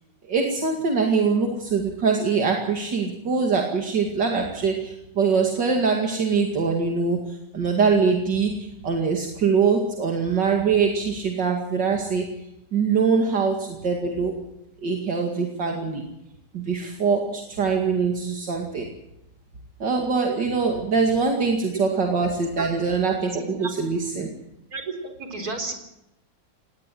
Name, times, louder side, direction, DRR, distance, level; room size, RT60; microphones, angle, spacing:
voice 1, 0.2-12.3 12.7-14.4 14.8-16.0 16.5-18.9 19.8-24.3, right 5 dB, 70° right, 2 dB, 2.9 m, -23 dB
voice 2, 23.4-23.7 24.7-25.7, right 3 dB, 55° right, 5 dB, 4.6 m, -32 dB
20.0 x 18.0 x 7.6 m, 0.88 s
omnidirectional pair, 2.0 m